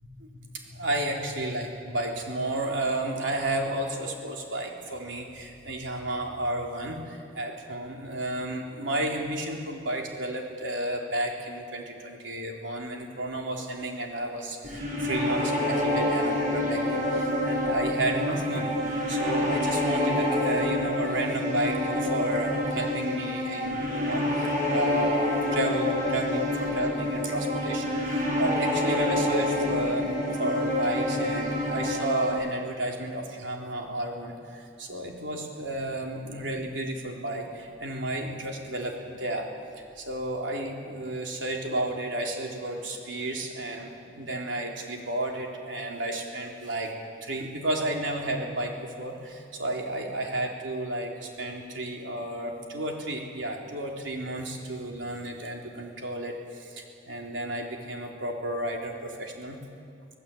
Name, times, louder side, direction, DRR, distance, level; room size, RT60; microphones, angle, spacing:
voice 1, 0.8-30.1 30.4-39.5 40.0-46.9 47.2-59.6, right 1 dB, 75° right, 0 dB, 3.7 m, -32 dB
sound 1, 14.6-32.3, left 1 dB, 45° right, 6.8 m, -27 dB
25.5 x 18.0 x 8.6 m, 2.3 s
head